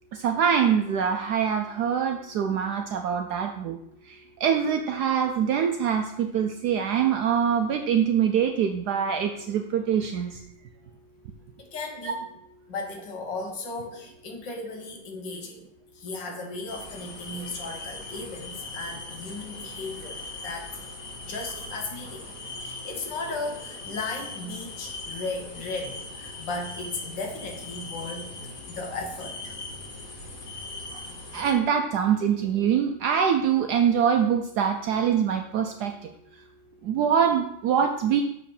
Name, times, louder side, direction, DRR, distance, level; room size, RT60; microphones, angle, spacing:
voice 1, 0.1-3.8 4.4-10.4 12.0-12.2 31.3-35.9 36.8-38.2, right 8 dB, 70° right, 5 dB, 0.9 m, -24 dB
voice 2, 11.6-12.2 12.7-15.6 15.9-20.2 20.4-20.7 21.2-22.3 22.6-28.3 28.7-29.6, left 3 dB, 65° left, 2 dB, 1.8 m, -36 dB
sound 1, 16.7-31.5, left 2 dB, 50° left, 1.5 m, -40 dB
6.9 x 4.9 x 5.3 m, 0.77 s
omnidirectional pair, 2.2 m